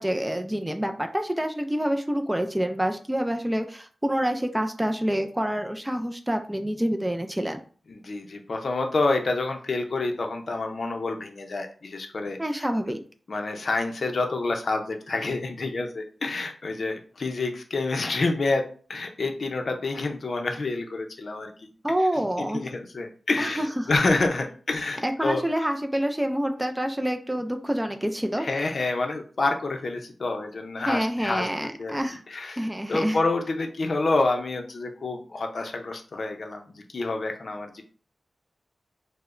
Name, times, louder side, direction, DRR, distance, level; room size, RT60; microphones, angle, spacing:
voice 1, 0.0-7.6 12.4-13.0 21.8-22.6 23.4-23.9 25.0-28.4 30.8-32.2 32.6-33.2, equal, 10° right, 5 dB, 0.3 m, -27 dB
voice 2, 7.9-12.6 13.3-18.6 18.9-21.5 22.0-22.1 22.4-25.4 28.4-31.5 31.8-31.9 32.3-37.8, left 3 dB, 50° left, 4 dB, 0.5 m, -28 dB
4.8 x 2.0 x 2.5 m, 0.42 s
wide cardioid pair, 145°, 0 cm